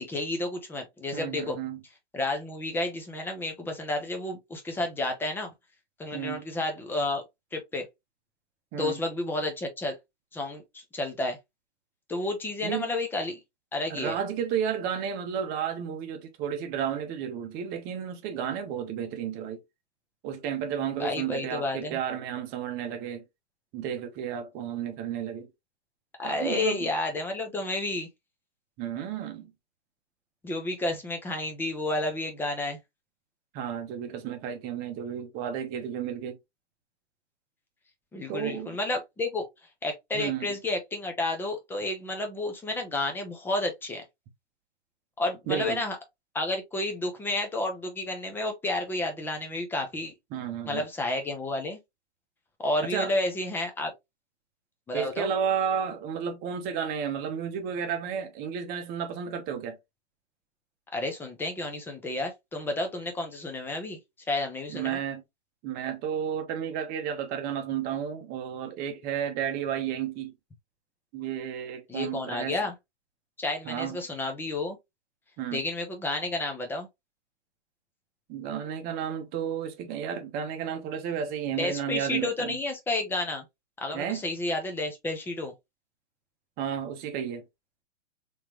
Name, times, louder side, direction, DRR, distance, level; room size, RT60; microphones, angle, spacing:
voice 1, 0.0-1.6 2.1-5.5 6.0-7.2 7.5-7.9 8.7-10.0 10.3-11.4 12.1-13.4 13.7-14.2 21.0-22.0 26.2-28.1 30.4-32.8 38.1-39.5 39.8-44.0 45.2-46.0 46.3-50.1 50.7-51.8 52.6-53.9 54.9-55.3 60.9-64.0 64.3-65.0 71.9-72.7 73.4-74.8 75.5-76.9 81.6-83.4 83.8-85.5, left 2 dB, 5° left, 0.6 m, -31 dB
voice 2, 1.1-1.8 6.1-6.4 8.7-9.0 12.6-12.9 13.9-19.6 20.2-23.2 23.7-25.5 26.2-26.9 28.8-29.5 33.5-36.4 38.3-38.8 40.1-40.5 45.5-45.8 50.3-50.8 52.9-53.1 54.9-59.8 64.7-65.2 65.6-70.3 71.1-72.6 73.7-74.0 75.4-75.6 78.3-82.6 83.9-84.2 86.6-87.4, right 8 dB, 25° right, 0.9 m, -32 dB
3.6 x 3.2 x 2.9 m
hypercardioid pair, 135°, 36 cm